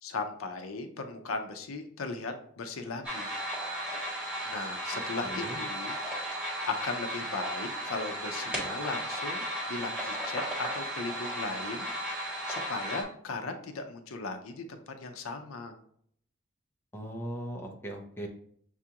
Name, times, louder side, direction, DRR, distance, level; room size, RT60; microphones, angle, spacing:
voice 1, 0.0-3.3 4.5-6.0 6.7-11.9 12.5-15.8, left 3 dB, 85° left, 6 dB, 0.5 m, -37 dB
sound 1, 3.0-13.0, equal, 5° right, 1.4 m, -35 dB
voice 2, 4.9-5.6 16.9-18.3, right 1 dB, 10° left, 0 dB, 0.6 m, -39 dB
6.6 x 2.4 x 2.8 m, 0.65 s
head